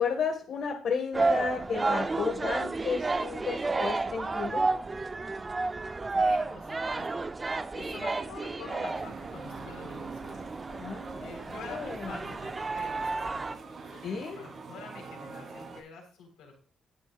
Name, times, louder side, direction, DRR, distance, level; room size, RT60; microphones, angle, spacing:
voice 1, 0.0-4.6 10.8-11.3 11.7-12.2 14.0-14.4, left 6 dB, 65° left, 2 dB, 1.7 m, -32 dB
sound 1, 1.1-13.5, right 3 dB, 25° right, 0.6 m, -31 dB
voice 2, 5.8-10.4 11.2-13.6 13.9-16.6, left 5 dB, 90° left, 1 dB, 3.9 m, -47 dB
sound 2, 8.9-15.8, right 4 dB, 50° right, 3.5 m, -44 dB
20.0 x 6.8 x 2.4 m, 0.39 s
cardioid pair, 90°, 0 cm